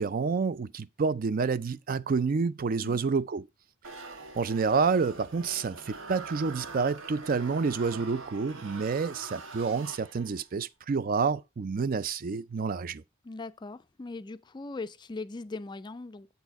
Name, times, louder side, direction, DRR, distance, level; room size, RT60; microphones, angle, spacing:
voice 1, 0.0-3.5 4.0-13.0, right 5 dB, 45° right, 0.4 m, -29 dB
sound 1, 3.8-10.5, right 3 dB, 75° right, 1.2 m, -44 dB
voice 2, 13.2-16.3, left 3 dB, 20° left, 0.4 m, -40 dB
8.1 x 4.4 x 4.6 m
head